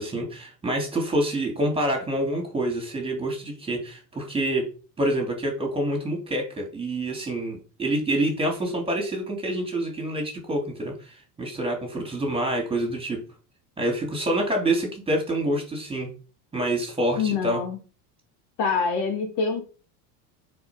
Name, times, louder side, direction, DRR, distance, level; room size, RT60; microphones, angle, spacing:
voice 1, 0.0-4.7 5.0-13.2 13.8-16.1 16.5-17.6, right 1 dB, 10° right, 1 dB, 2.9 m, -27 dB
voice 2, 17.2-17.8 18.6-19.6, left 5 dB, 55° left, 3 dB, 3.3 m, -25 dB
9.4 x 4.8 x 4.6 m, 0.36 s
supercardioid pair, 120°, 47 cm